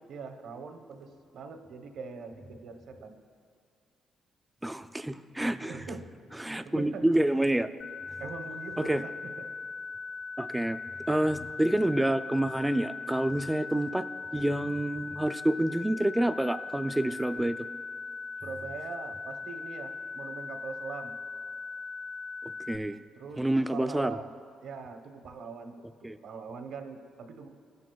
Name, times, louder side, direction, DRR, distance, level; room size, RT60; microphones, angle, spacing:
voice 1, 0.1-3.1 5.6-6.1 6.6-7.1 8.2-9.5 18.4-21.1 23.1-25.9 26.2-27.5, right 5 dB, 75° right, 6 dB, 0.9 m, -42 dB
voice 2, 4.6-5.9 6.4-7.7 8.8-9.0 10.4-10.8 11.1-14.0 14.3-17.6 22.7-23.0 23.4-24.2 26.0-26.2, right 1 dB, 10° right, 11 dB, 0.3 m, -28 dB
sound 1, 7.8-22.8, left 4 dB, 80° left, 0.7 m, -40 dB
16.5 x 11.0 x 2.3 m, 2.1 s
cardioid pair, 90°, 0 cm